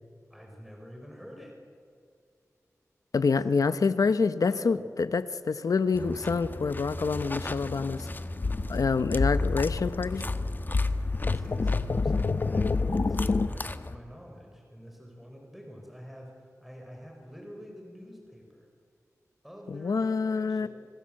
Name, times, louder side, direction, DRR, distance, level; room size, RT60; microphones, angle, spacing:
voice 1, 0.3-1.6 3.4-3.6 4.4-4.8 11.2-18.7 19.4-20.7, equal, 5° right, 1 dB, 4.9 m, -47 dB
voice 2, 3.1-8.1 8.7-10.2 19.7-20.7, left 4 dB, 85° left, 13 dB, 1.0 m, -27 dB
sound 1, 5.9-14.0, left 2 dB, 35° left, 1.1 m, -38 dB
sound 2, 8.4-13.5, left 3 dB, 55° left, 0.8 m, -28 dB
26.5 x 19.5 x 7.7 m, 2.3 s
wide cardioid pair, 60°, 6 cm